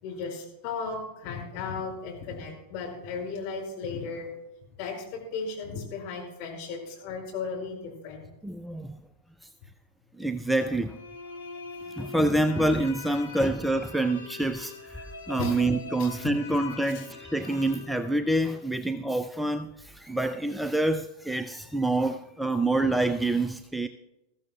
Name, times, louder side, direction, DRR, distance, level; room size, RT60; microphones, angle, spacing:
voice 1, 0.0-4.3 4.8-8.3 15.4-15.5 16.0-16.1 16.9-17.0, left 5 dB, 45° left, -2 dB, 5.1 m, -35 dB
voice 2, 8.4-9.0 9.4-9.5 10.2-11.0 12.0-23.9, right 2 dB, 5° right, 10 dB, 0.4 m, -27 dB
sound 1, 10.9-18.6, left 4 dB, 80° left, 1.9 m, -43 dB
21.0 x 14.5 x 2.3 m, 0.96 s
figure-of-eight pair, 90°, 0 cm